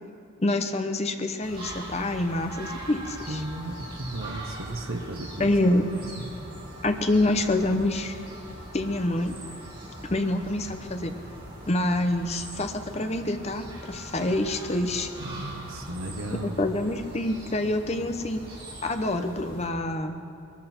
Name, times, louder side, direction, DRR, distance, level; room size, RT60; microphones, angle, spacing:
voice 1, 0.4-3.4 5.4-5.9 6.8-8.2 8.7-9.4 10.1-11.1 11.7-15.1 16.4-18.4 18.8-20.2, left 1 dB, 30° left, 7 dB, 0.9 m, -26 dB
sound 1, 1.4-19.7, right 1 dB, 25° right, 4.6 m, -41 dB
voice 2, 3.3-5.5 6.1-6.5 15.2-16.5, right 2 dB, 80° right, 2 dB, 1.1 m, -35 dB
20.5 x 13.0 x 4.4 m, 2.9 s
head